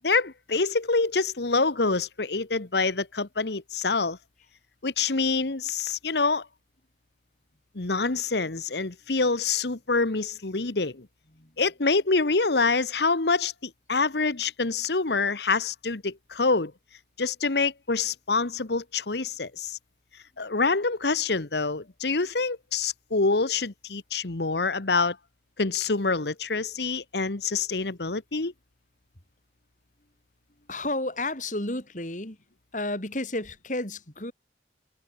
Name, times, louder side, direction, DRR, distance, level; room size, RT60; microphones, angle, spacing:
voice 1, 0.0-4.2 4.8-6.5 7.7-11.1 11.6-16.7 17.2-19.8 20.4-25.2 25.6-28.5, left 4 dB, 70° left, 1.3 m, -26 dB
voice 2, 30.7-32.4 32.7-34.3, left 2 dB, 45° left, 4.0 m, -31 dB
head